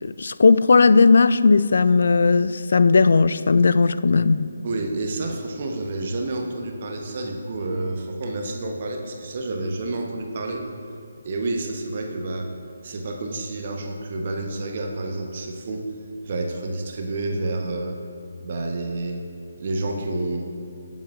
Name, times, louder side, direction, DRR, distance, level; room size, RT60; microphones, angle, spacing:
voice 1, 0.0-4.5, left 4 dB, 60° left, 0.3 m, -17 dB
voice 2, 4.6-10.6 11.2-12.5 12.8-15.9 16.2-18.0 18.4-19.3 19.6-20.5, right 2 dB, 45° right, 0.9 m, -29 dB
15.5 x 7.3 x 2.4 m
figure-of-eight pair, 150°, 0 cm